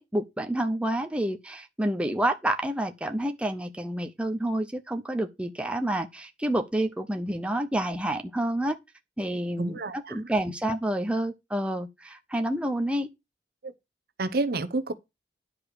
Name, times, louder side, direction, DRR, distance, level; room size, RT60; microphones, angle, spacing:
voice 1, 0.0-8.8 9.2-13.1, right 1 dB, 5° right, 0.6 m, -29 dB
voice 2, 9.6-10.2 13.6-13.7 14.2-14.9, right 2 dB, 60° right, 0.9 m, -29 dB
10.5 x 4.9 x 4.9 m
head